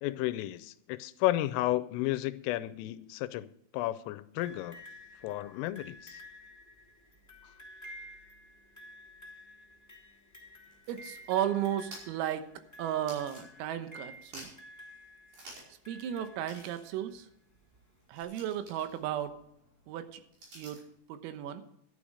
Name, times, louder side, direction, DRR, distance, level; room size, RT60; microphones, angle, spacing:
voice 1, 0.0-4.8 5.2-6.2, left 16 dB, 85° left, 3.2 m, -33 dB
sound 1, 4.4-17.2 18.2-18.3, left 1 dB, 10° left, 1.0 m, -52 dB
sound 2, 10.5-13.9 14.2-14.8 15.3-15.8 16.1-16.2 16.4-21.0, right 2 dB, 45° right, 6.6 m, -53 dB
voice 2, 10.9-12.5 12.8-14.6 15.9-17.3 18.1-19.4 19.9-20.2 20.6-21.6, right 10 dB, 90° right, 3.8 m, -34 dB
12.5 x 12.0 x 4.9 m
omnidirectional pair, 5.9 m